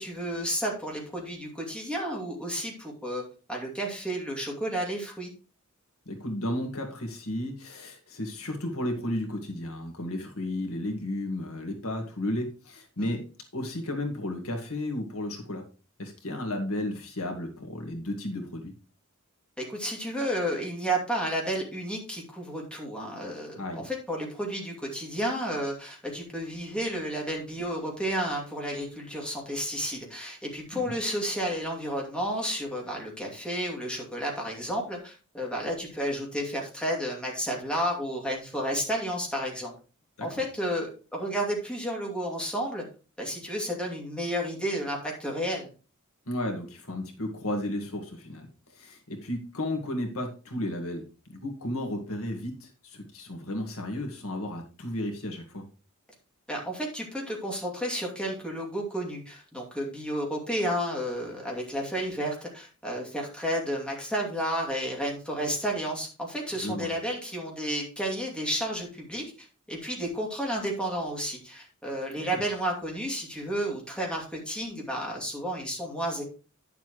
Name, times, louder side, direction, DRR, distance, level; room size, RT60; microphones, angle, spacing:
voice 1, 0.0-3.2 3.5-5.3 13.0-13.2 19.6-39.7 40.2-42.9 43.2-45.7 56.5-76.2, equal, 5° left, -1 dB, 2.6 m, -32 dB
voice 2, 6.1-13.2 13.5-15.6 16.0-18.7 23.5-23.9 30.7-31.0 40.2-40.3 46.3-48.5 48.7-51.0 51.3-55.6 66.6-66.9 72.2-72.4, left 1 dB, 75° left, 3 dB, 2.0 m, -33 dB
10.5 x 7.1 x 3.1 m, 0.34 s
head